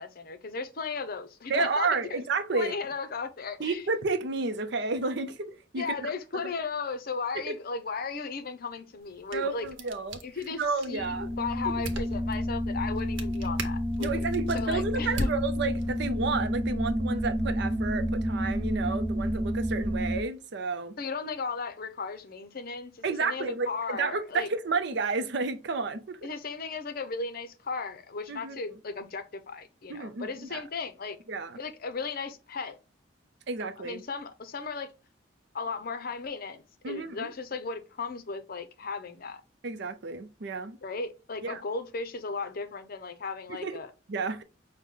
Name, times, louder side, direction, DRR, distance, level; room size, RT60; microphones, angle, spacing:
voice 1, 0.0-2.2 2.5-3.8 5.8-9.7 10.2-10.6 10.9-14.3 14.5-15.3 21.0-24.5 26.2-31.2 31.5-32.8 33.8-34.9 35.5-39.4 40.8-43.9, left 4 dB, 50° left, 0.7 m, -36 dB
voice 2, 1.5-2.7 3.6-5.8 7.5-7.6 9.3-10.2 10.6-11.3 14.0-21.0 23.0-26.2 28.3-28.6 29.9-30.6 31.3-31.6 33.5-34.0 36.8-37.3 39.6-40.8 41.4-41.6 43.5-43.8 44.1-44.4, right 4 dB, 65° right, 0.5 m, -31 dB
sound 1, 9.0-16.1, right 1 dB, 90° right, 0.9 m, -41 dB
sound 2, 11.0-20.2, equal, 15° right, 0.5 m, -30 dB
5.8 x 2.2 x 3.6 m
head